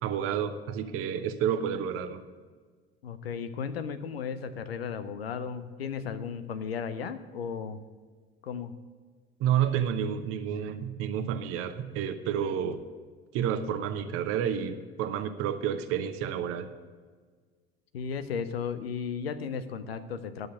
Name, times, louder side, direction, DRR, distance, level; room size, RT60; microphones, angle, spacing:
voice 1, 0.0-2.2 9.4-12.8 13.3-16.7, right 9 dB, 50° right, 10 dB, 0.9 m, -30 dB
voice 2, 3.0-7.8 8.4-8.7 17.9-20.5, left 6 dB, 75° left, 11 dB, 0.7 m, -35 dB
11.0 x 6.6 x 7.8 m, 1.5 s
figure-of-eight pair, 65°, 30 cm